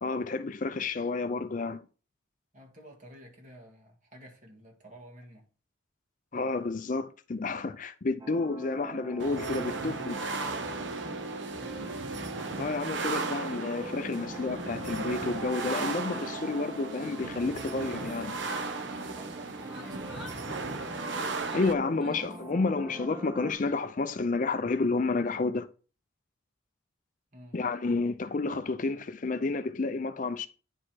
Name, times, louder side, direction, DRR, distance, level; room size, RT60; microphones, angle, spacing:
voice 1, 0.0-1.8 6.3-10.2 12.6-18.3 21.5-25.7 27.5-30.5, left 3 dB, 40° left, 0.5 m, -30 dB
voice 2, 2.5-5.5 9.8-11.1 11.6-12.0 18.9-20.8 27.3-27.6, equal, 40° right, 1.9 m, -51 dB
sound 1, 8.2-23.5, right 1 dB, 20° right, 0.8 m, -43 dB
sound 2, 9.2-21.7, right 3 dB, 65° right, 0.9 m, -36 dB
Yell, 17.7-19.4 19.7-22.5, left 1 dB, ahead, 1.6 m, -50 dB
9.8 x 4.8 x 4.5 m
head